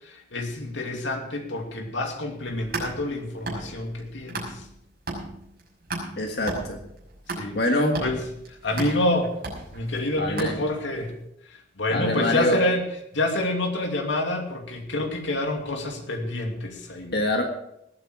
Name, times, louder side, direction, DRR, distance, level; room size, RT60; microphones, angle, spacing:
voice 1, 0.0-4.7 7.3-7.6 8.0-8.2 8.5-9.3 9.7-11.2 11.4-12.9 13.1-17.1, left 1 dB, 80° left, 3 dB, 2.6 m, -28 dB
sound 1, 2.4-4.8 5.1-11.0, right 2 dB, 55° right, 5.9 m, -35 dB
voice 2, 6.2-6.8 7.5-8.0 10.2-10.5 11.9-12.6 17.1-17.4, left 1 dB, 60° left, 2 dB, 1.7 m, -24 dB
20.0 x 9.0 x 4.9 m, 0.78 s
head